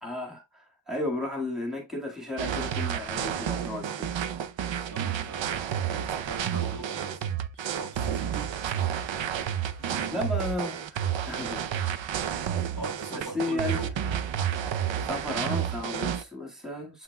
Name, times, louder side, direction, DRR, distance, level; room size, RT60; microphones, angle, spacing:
voice 1, 0.0-4.2 10.1-11.6 13.1-13.8 15.0-17.0, left 2 dB, ahead, 1.8 m, -34 dB
sound 1, 2.4-16.2, right 9 dB, 85° right, 0.7 m, -30 dB
voice 2, 4.9-8.7 9.6-10.2 12.4-14.0, right 4 dB, 65° right, 3.7 m, -42 dB
7.5 x 5.6 x 2.2 m
wide cardioid pair, 120°, 44 cm